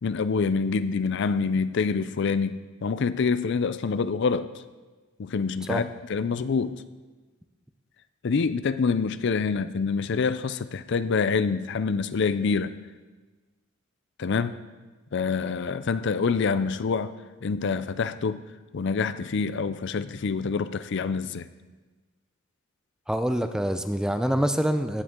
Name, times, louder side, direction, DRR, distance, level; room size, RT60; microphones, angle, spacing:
voice 1, 0.0-4.5 5.2-6.8 8.2-12.7 14.2-14.5 15.1-17.1 17.4-18.4 18.7-21.5, left 5 dB, 55° left, 13 dB, 0.4 m, -26 dB
voice 2, 23.1-25.0, equal, 5° right, 8 dB, 0.5 m, -25 dB
15.5 x 9.6 x 3.7 m, 1.3 s
head